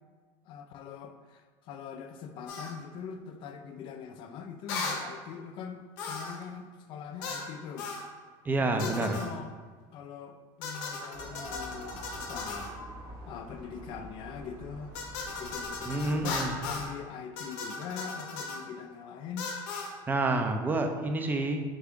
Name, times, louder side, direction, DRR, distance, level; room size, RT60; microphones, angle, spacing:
voice 1, 0.5-7.9 8.6-9.5 9.9-12.7 13.3-14.9 15.4-19.5, left 7 dB, 50° left, 7 dB, 0.4 m, -42 dB
sound 1, 2.5-2.7 4.7-5.0 6.0-6.4 7.2-7.5 7.8-8.1 8.8-9.3 10.6-12.7 14.9-16.9 17.4-18.6 19.4-19.9, left 4 dB, 75° left, 0.7 m, -37 dB
voice 2, 8.4-9.2 15.9-16.5 20.1-21.6, right 2 dB, 15° right, 5 dB, 0.4 m, -28 dB
sound 2, 11.1-16.9, right 1 dB, 55° right, 1.0 m, -46 dB
3.6 x 3.5 x 3.5 m, 1.5 s
supercardioid pair, 120°, 11 cm